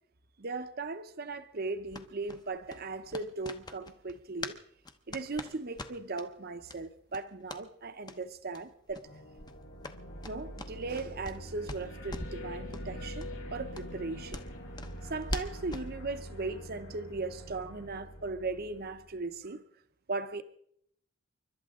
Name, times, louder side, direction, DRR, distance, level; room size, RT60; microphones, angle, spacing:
voice 1, 0.4-4.6 5.1-9.1 10.2-14.5 15.0-19.6 20.1-20.4, right 3 dB, 45° right, 0.8 m, -38 dB
sound 1, 1.9-4.6 4.8-6.3 6.7-6.8 7.1-7.6 8.0-8.2 8.5-8.6 8.9-9.1 9.4-11.4 11.7-12.4 12.7-12.9 13.2-13.3 13.7-15.9, left 2 dB, 20° left, 0.9 m, -42 dB
sound 2, 9.0-19.2, equal, 80° left, 5.4 m, -44 dB
29.5 x 12.0 x 3.7 m
head